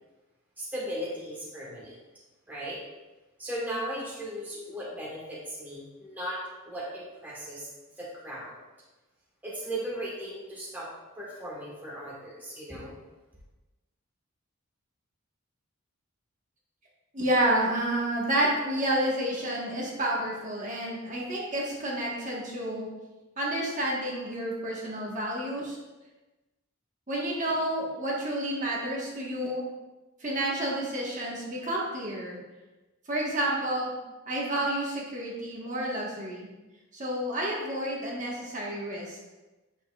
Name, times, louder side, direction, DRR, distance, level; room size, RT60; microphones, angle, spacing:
voice 1, 0.6-2.0 2.5-2.8 3.4-7.7 8.0-8.5 9.4-10.9 11.2-12.9, equal, 10° right, -6 dB, 1.3 m, -37 dB
voice 2, 17.1-22.9 23.4-25.8 27.1-29.7 30.2-32.4 33.1-33.9 34.3-36.5 36.9-39.2, right 1 dB, 35° right, -4 dB, 1.4 m, -30 dB
8.3 x 6.5 x 2.4 m, 1.1 s
head